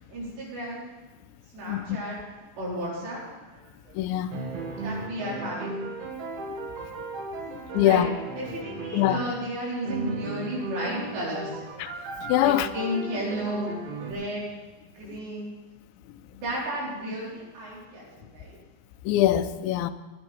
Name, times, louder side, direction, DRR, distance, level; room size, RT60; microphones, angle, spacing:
voice 1, 0.1-0.9 1.5-2.2 2.6-3.2 4.7-5.8 7.7-8.1 8.4-11.6 12.4-14.5 14.8-15.5 16.3-18.6, equal, 70° right, 6.4 m, -33 dB
sound 1, 3.2-4.1 4.3-9.5 9.9-14.1, right 2 dB, 90° right, 4.3 m, -36 dB
voice 2, 4.0-4.4 7.7-8.1 8.9-9.2 11.8-11.9 12.2-12.7 19.1-19.9, left 13 dB, 90° left, 3.0 m, -23 dB
19.0 x 9.9 x 4.3 m
omnidirectional pair, 5.2 m